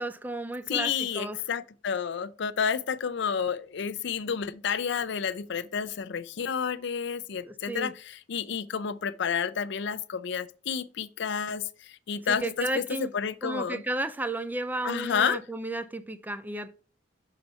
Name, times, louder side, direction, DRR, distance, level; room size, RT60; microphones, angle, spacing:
voice 1, 0.0-1.4 7.5-7.9 12.3-13.1 13.4-16.7, right 1 dB, 10° right, 0.4 m, -33 dB
voice 2, 0.7-13.8 14.8-15.4, left 7 dB, 65° left, 0.5 m, -30 dB
6.6 x 4.1 x 4.4 m
head